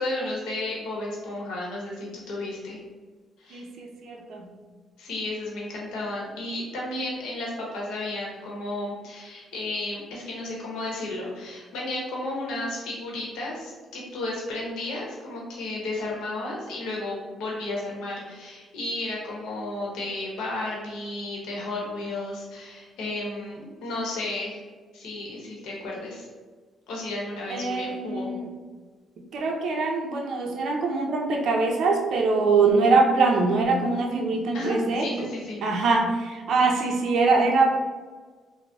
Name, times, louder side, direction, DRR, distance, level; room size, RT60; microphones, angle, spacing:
voice 1, 0.0-2.8 3.4-3.6 5.0-24.6 24.9-26.3 26.9-28.3 34.5-35.6, left 2 dB, 85° left, -3 dB, 0.8 m, -33 dB
voice 2, 3.5-4.5 27.5-28.5 29.2-35.1 35.6-37.7, right 3 dB, 70° right, 1 dB, 0.4 m, -23 dB
3.8 x 2.0 x 2.3 m, 1.4 s
cardioid pair, 90°, 0 cm